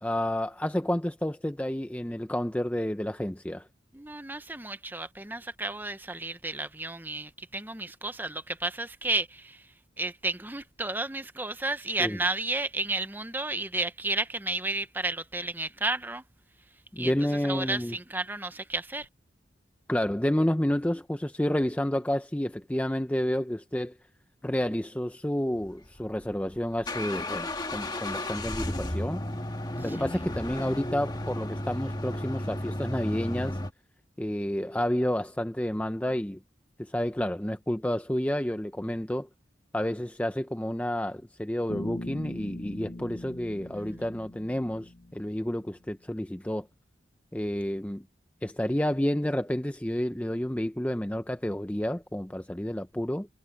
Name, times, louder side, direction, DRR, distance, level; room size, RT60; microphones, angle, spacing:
voice 1, 0.0-3.7 12.0-12.2 16.9-18.0 19.9-24.0 24.4-29.2 29.8-33.6 34.2-36.4 36.8-39.3 39.7-46.7 47.3-48.0 48.4-53.3, left 1 dB, 10° left, 0.6 m, -30 dB
voice 2, 3.9-9.7 10.0-16.2 17.0-17.1 17.4-19.1 43.8-44.0, right 2 dB, 10° right, 0.9 m, -32 dB
sound 1, 25.9-33.7, left 1 dB, 25° left, 1.6 m, -33 dB
Bass guitar, 41.7-45.6, left 1 dB, 55° left, 1.0 m, -41 dB
head